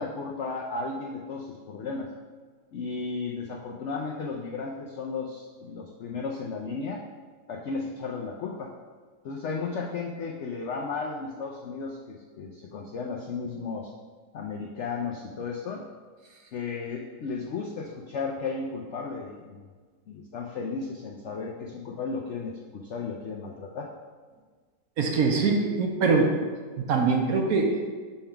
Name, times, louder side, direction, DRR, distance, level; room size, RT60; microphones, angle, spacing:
voice 1, 0.0-2.1 2.7-7.0 7.5-8.7 9.2-13.9 14.3-15.8 16.5-19.6 20.1-23.9, left 4 dB, 90° left, -1 dB, 0.6 m, -34 dB
voice 2, 25.0-26.3 26.8-27.9, right 4 dB, 65° right, 2 dB, 1.0 m, -23 dB
5.6 x 3.7 x 5.6 m, 1.5 s
omnidirectional pair, 1.9 m